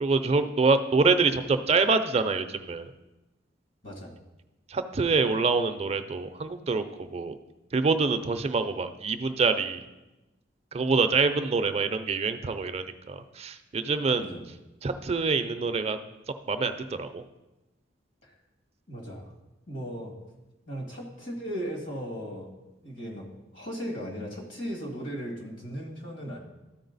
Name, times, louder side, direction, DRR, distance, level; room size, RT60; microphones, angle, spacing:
voice 1, 0.0-2.9 4.7-7.3 7.7-9.8 10.7-14.3 14.8-16.0 16.5-17.2, right 4 dB, 35° right, 9 dB, 0.4 m, -26 dB
voice 2, 18.9-19.3 19.7-20.1 20.7-22.5 22.8-26.4, equal, 80° left, -1 dB, 2.2 m, -37 dB
13.0 x 4.4 x 4.0 m, 1.0 s
head